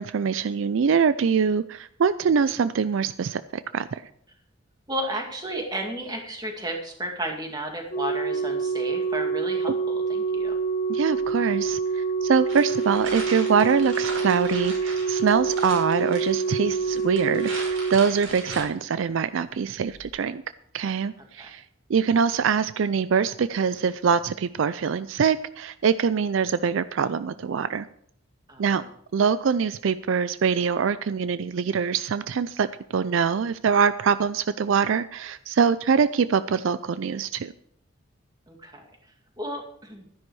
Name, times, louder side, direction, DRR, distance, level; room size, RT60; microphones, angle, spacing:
voice 1, 0.0-3.4 3.7-4.0 10.9-20.4 20.7-21.6 21.9-27.9 28.6-28.8 29.1-32.7 32.9-37.5, right 6 dB, 65° right, 14 dB, 0.4 m, -24 dB
voice 2, 4.9-10.6 21.4-21.5 28.5-28.8 38.5-38.9 39.4-40.1, right 1 dB, 20° right, 2 dB, 2.1 m, -33 dB
Organ, 7.9-18.8 19.9-20.1, right 5 dB, 45° left, 0.9 m, -27 dB
sound 1, 12.5-18.6, right 3 dB, 85° right, 5.5 m, -38 dB
12.5 x 10.5 x 4.7 m, 0.66 s
head